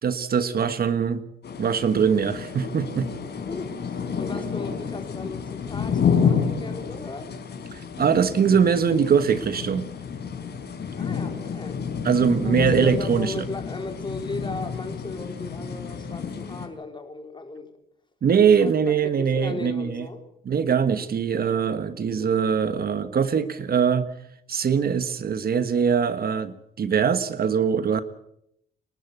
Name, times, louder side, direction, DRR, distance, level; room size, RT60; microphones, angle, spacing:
voice 1, 0.0-1.2 1.6-3.1 7.7-9.9 12.0-13.4 18.2-20.1 20.5-24.1 24.5-28.0, right 7 dB, 50° right, 12 dB, 1.4 m, -22 dB
sound 1, 1.4-16.7, left 6 dB, 60° left, 4.4 m, -29 dB
voice 2, 3.5-7.3 11.0-11.8 12.4-17.8 18.6-18.7 19.0-20.3, left 3 dB, 25° left, 5 dB, 4.5 m, -36 dB
29.0 x 12.5 x 8.2 m, 0.75 s
cardioid pair, 90°, 20 cm